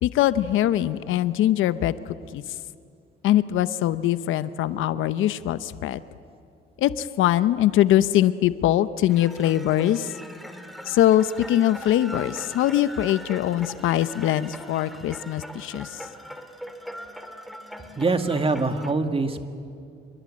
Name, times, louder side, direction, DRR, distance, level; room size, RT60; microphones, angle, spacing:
voice 1, 0.0-1.9 2.3-2.4 3.2-6.0 6.8-10.1 10.9-15.9, left 12 dB, 85° left, 14 dB, 0.9 m, -22 dB
sound 1, 9.1-18.9, equal, ahead, 2.6 m, -40 dB
voice 2, 18.0-19.5, right 3 dB, 30° right, 7 dB, 2.0 m, -24 dB
27.5 x 22.5 x 8.7 m, 2.4 s
cardioid pair, 90°, 20 cm